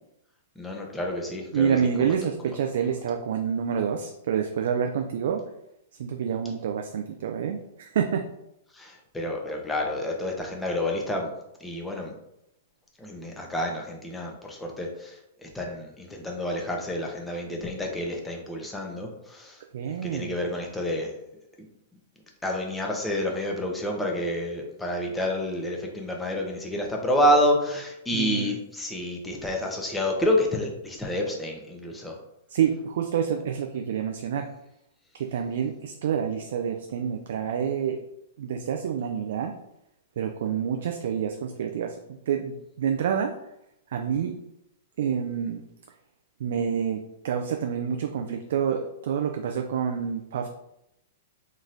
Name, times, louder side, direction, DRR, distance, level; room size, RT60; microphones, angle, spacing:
voice 1, 0.6-1.8 8.7-11.3 11.6-12.2 13.0-19.6 20.0-21.2 22.4-32.2, left 1 dB, 10° left, 0 dB, 0.8 m, -29 dB
voice 2, 1.5-5.4 6.0-8.3 19.7-20.3 28.1-28.5 32.5-34.5 35.1-38.0 38.4-39.5 40.2-42.0 42.3-43.3 43.9-44.4 45.0-45.6 46.4-50.5, right 7 dB, 65° right, 4 dB, 0.3 m, -28 dB
3.9 x 3.1 x 2.6 m, 0.83 s
hypercardioid pair, 110°, 0 cm